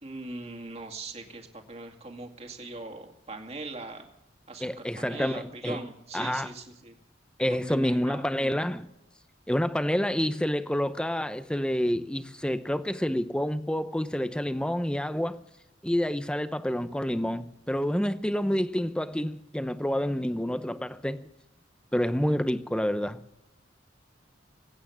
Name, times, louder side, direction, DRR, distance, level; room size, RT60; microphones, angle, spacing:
voice 1, 0.0-4.1 4.5-7.0 7.5-8.3, right 3 dB, 35° right, 2.4 m, -41 dB
voice 2, 4.6-5.8 6.1-6.5 7.4-8.9 9.5-15.4 15.8-21.2 21.9-23.2, equal, 5° left, 0.7 m, -28 dB
21.0 x 9.1 x 7.2 m
head